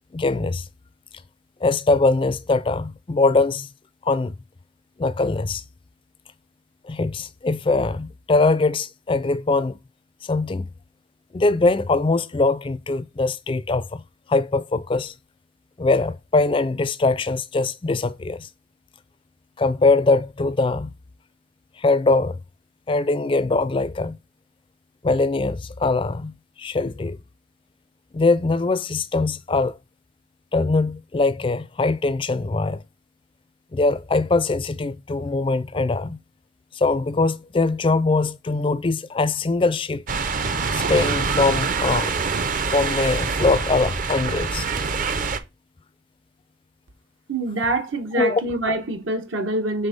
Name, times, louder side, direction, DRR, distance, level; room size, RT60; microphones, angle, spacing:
voice 1, 0.1-0.6 1.6-3.7 4.0-4.3 5.0-5.6 6.8-9.8 10.2-10.7 11.3-14.0 14.3-15.1 15.8-18.5 19.6-20.9 21.8-22.4 22.9-24.2 25.0-27.2 28.1-29.7 30.5-32.8 33.7-36.2 36.7-40.0 40.7-42.2 42.7-44.7 48.2-48.4, left 3 dB, 25° left, 0.4 m, -22 dB
sound 1, 40.1-45.4, right 4 dB, 45° right, 0.6 m, -25 dB
voice 2, 47.3-49.9, right 2 dB, 80° right, 1.5 m, -25 dB
7.0 x 3.8 x 5.2 m
head